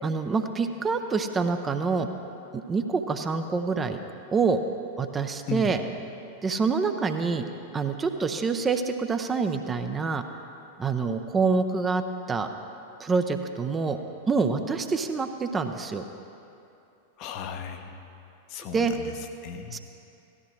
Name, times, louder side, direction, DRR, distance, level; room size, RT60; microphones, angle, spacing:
voice 1, 0.0-2.1 2.7-4.0 4.3-4.6 5.0-5.8 6.4-7.4 7.7-10.2 10.8-12.0 12.3-12.5 13.0-14.0 14.3-16.0 18.7-18.9 19.7-19.8, right 4 dB, 20° right, 6 dB, 0.6 m, -26 dB
voice 2, 17.2-18.0 18.5-19.8, left 5 dB, 40° left, 6 dB, 0.9 m, -36 dB
16.5 x 13.0 x 3.2 m, 2.7 s
figure-of-eight pair, 90°, 0 cm